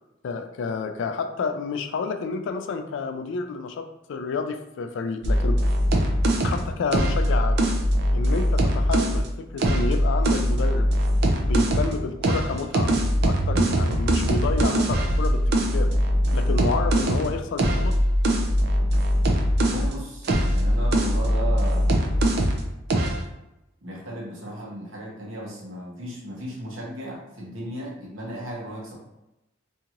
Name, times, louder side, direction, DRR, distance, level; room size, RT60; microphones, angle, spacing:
voice 1, 0.2-5.6 6.4-7.6 8.1-10.9 11.4-12.9 13.2-15.4 15.7-15.9 16.3-18.0, left 4 dB, 65° left, 7 dB, 0.3 m, -30 dB
sound 1, 5.2-9.2 9.6-12.0 12.2-19.9 20.2-22.6 22.9-23.2, equal, 55° right, 0.4 m, -22 dB
voice 2, 19.6-22.2 23.8-28.9, right 1 dB, 75° right, -3 dB, 1.0 m, -36 dB
2.7 x 2.4 x 2.9 m, 0.93 s
head